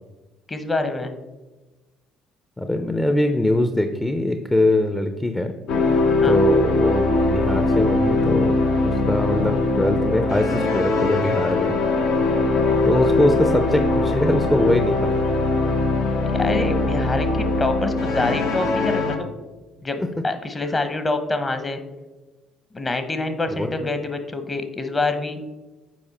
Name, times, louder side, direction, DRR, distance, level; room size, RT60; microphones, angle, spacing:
voice 1, 0.5-1.1 6.2-6.4 16.3-19.3 19.8-20.0 20.2-21.8 22.7-25.4, left 2 dB, 30° left, 9 dB, 1.0 m, -26 dB
voice 2, 2.6-5.5 6.2-8.5 8.8-11.7 12.8-15.2 20.0-20.1 23.5-23.8, left 1 dB, 10° left, 6 dB, 0.6 m, -22 dB
sound 1, 5.7-19.2, left 2 dB, 70° left, 0.9 m, -21 dB
7.4 x 4.8 x 4.2 m, 1.2 s
hypercardioid pair, 55°, 0 cm